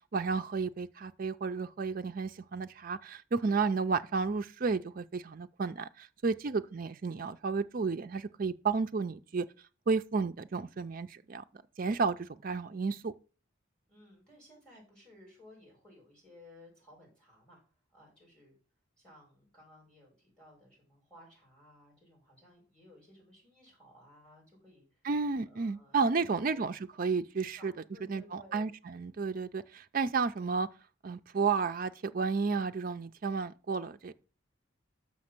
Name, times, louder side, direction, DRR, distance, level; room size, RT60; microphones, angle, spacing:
voice 1, 0.1-9.5 9.9-11.4 11.8-13.1 25.0-27.7 28.1-30.7 31.0-34.1, right 4 dB, 45° right, 0.4 m, -32 dB
voice 2, 13.9-17.6 17.9-18.5 19.0-25.0 25.4-26.6 27.6-28.7, left 1 dB, 5° left, 5.0 m, -58 dB
6.4 x 5.7 x 6.0 m
head